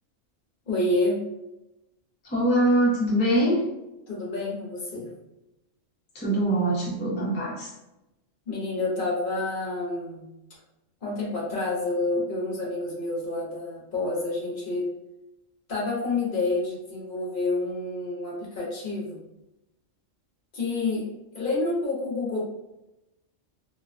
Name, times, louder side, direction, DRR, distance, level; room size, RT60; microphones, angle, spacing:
voice 1, 0.7-1.2 4.1-5.1 8.5-10.3 11.0-14.9 15.7-19.2 20.5-22.4, left 2 dB, 50° left, -4 dB, 0.7 m, -28 dB
voice 2, 2.2-3.6 6.1-7.7, right 1 dB, 15° left, -7 dB, 0.4 m, -23 dB
2.5 x 2.1 x 2.4 m, 0.94 s
omnidirectional pair, 1.3 m